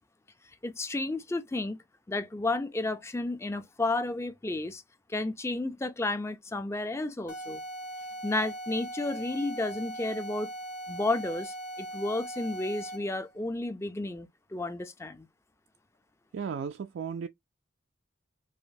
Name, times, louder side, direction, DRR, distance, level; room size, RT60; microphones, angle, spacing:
voice 1, 0.6-1.8 2.1-4.8 5.1-7.6 8.2-10.5 10.9-15.3, left 2 dB, 15° left, 0.4 m, -32 dB
sound 1, 7.3-13.2, right 1 dB, 55° left, 1.3 m, -40 dB
voice 2, 16.3-17.3, right 6 dB, 65° right, 0.3 m, -35 dB
4.8 x 2.1 x 2.6 m
head